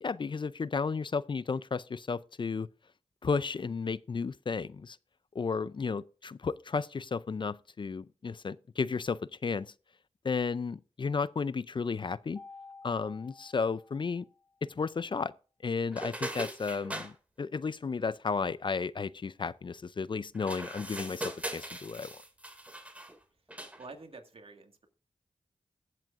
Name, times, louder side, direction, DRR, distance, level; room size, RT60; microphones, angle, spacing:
voice 1, 0.0-2.7 3.2-5.0 5.3-9.7 10.2-12.4 12.8-14.3 14.8-15.3 15.6-22.1, left 5 dB, 45° left, 0.4 m, -33 dB
Mallet percussion, 12.4-14.6, left 3 dB, 15° left, 4.6 m, -52 dB
sound 1, 15.9-17.1 20.3-23.2 23.5-23.9, right 1 dB, 15° right, 2.3 m, -40 dB
voice 2, 23.8-24.9, right 3 dB, 60° right, 1.9 m, -48 dB
22.0 x 7.5 x 2.5 m
cardioid pair, 55°, 11 cm